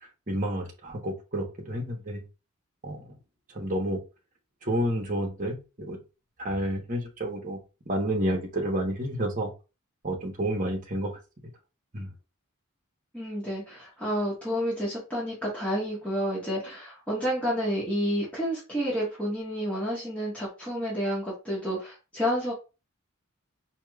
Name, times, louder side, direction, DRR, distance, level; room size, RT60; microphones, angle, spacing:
voice 1, 0.3-2.2 2.8-3.0 3.5-4.0 4.6-6.0 6.4-7.6 7.9-9.5 10.0-11.1 11.9-12.1, right 1 dB, 35° right, 1 dB, 1.1 m, -30 dB
voice 2, 13.1-22.5, equal, 5° left, -8 dB, 1.5 m, -30 dB
4.9 x 2.9 x 2.3 m, 0.30 s
head